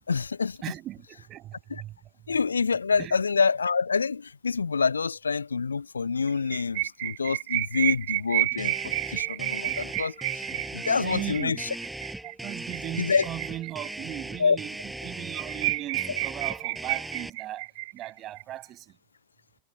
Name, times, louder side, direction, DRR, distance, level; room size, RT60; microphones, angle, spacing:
voice 1, 0.1-0.6 1.7-1.8 2.3-10.2 10.7-11.7 13.0-13.3 14.4-14.6, left 5 dB, 75° left, 0.6 m, -26 dB
voice 2, 0.6-2.0 2.2-2.4 3.0-3.2 10.7-11.7 12.2-17.7 17.9-19.0, right 13 dB, 35° right, 6.3 m, -38 dB
sound 1, 6.3-14.2 14.6-14.7 15.0-15.1 15.3-18.4, right 22 dB, 50° right, 5.0 m, -31 dB
sound 2, 8.6-17.3, right 2 dB, 5° right, 5.4 m, -39 dB
figure-of-eight pair, 90°, 0 cm